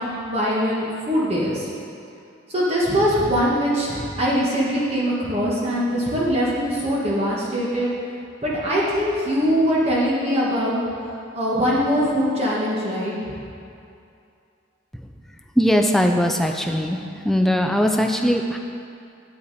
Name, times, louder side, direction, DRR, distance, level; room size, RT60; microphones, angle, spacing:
voice 1, 0.0-1.7 2.5-7.9 8.4-10.8 11.3-13.1, equal, 30° right, -6 dB, 1.6 m, -22 dB
voice 2, 15.6-17.0 17.2-18.6, equal, ahead, 3 dB, 0.5 m, -20 dB
9.4 x 8.6 x 4.2 m, 2.5 s
head